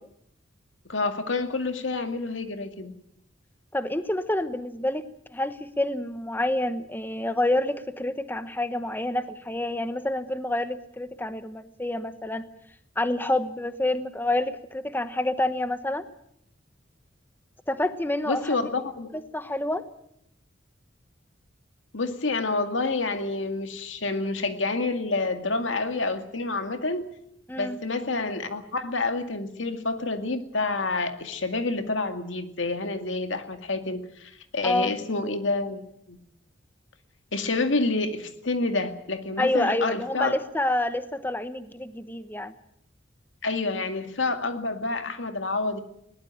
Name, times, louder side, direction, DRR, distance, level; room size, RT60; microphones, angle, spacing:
voice 1, 0.9-2.9 18.3-19.1 21.9-27.1 27.6-35.8 36.1-36.2 37.3-40.3 43.4-45.8, left 3 dB, 85° left, 7 dB, 2.1 m, -28 dB
voice 2, 3.7-5.1 5.3-12.5 13.0-16.0 17.7-18.6 19.1-19.9 27.5-27.8 34.6-34.9 39.4-42.5, left 1 dB, 10° left, 11 dB, 1.0 m, -28 dB
21.0 x 18.5 x 8.9 m, 0.75 s
head